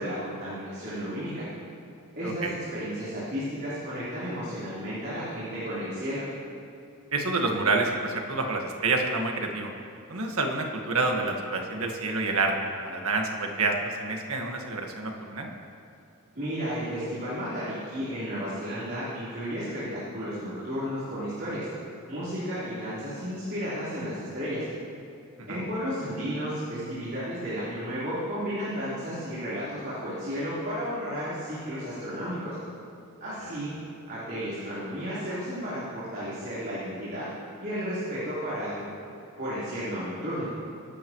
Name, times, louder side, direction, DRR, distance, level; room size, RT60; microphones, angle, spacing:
voice 1, 0.0-1.4 2.2-6.2 16.3-21.7 22.1-24.6 25.5-32.6 33.2-33.7 34.1-37.3 37.6-38.8 39.4-40.5, equal, 45° right, -11 dB, 3.9 m, -33 dB
voice 2, 7.1-9.7 10.1-15.5 25.4-25.6 33.4-33.5, right 3 dB, 75° right, 2 dB, 1.6 m, -28 dB
24.0 x 12.0 x 3.1 m, 2.7 s
head